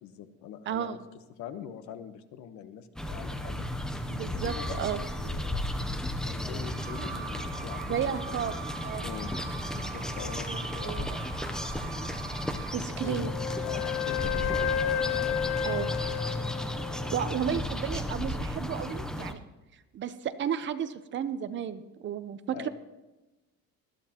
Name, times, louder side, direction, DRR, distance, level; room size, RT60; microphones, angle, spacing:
voice 1, 0.0-3.6 4.3-5.7 6.2-8.5 9.0-9.3 9.7-11.5 12.9-13.3 13.6-15.9 17.2-17.7 22.5-22.7, left 9 dB, 70° left, 10 dB, 1.2 m, -44 dB
voice 2, 0.7-1.0 4.1-5.0 7.9-8.6 8.8-9.0 10.5-11.1 12.0-12.2 12.7-13.3 15.7-15.9 17.1-19.4 19.9-22.7, right 9 dB, 40° right, 12 dB, 0.7 m, -33 dB
sound 1, 3.0-19.3, left 1 dB, ahead, 0.7 m, -34 dB
Wind instrument woodwind instrument, 6.5-12.9, right 8 dB, 85° right, 1.5 m, -44 dB
Wind instrument woodwind instrument 2, 13.0-17.2, left 10 dB, 50° left, 0.7 m, -31 dB
20.5 x 14.0 x 3.0 m, 1.1 s
cardioid pair, 155°, 30 cm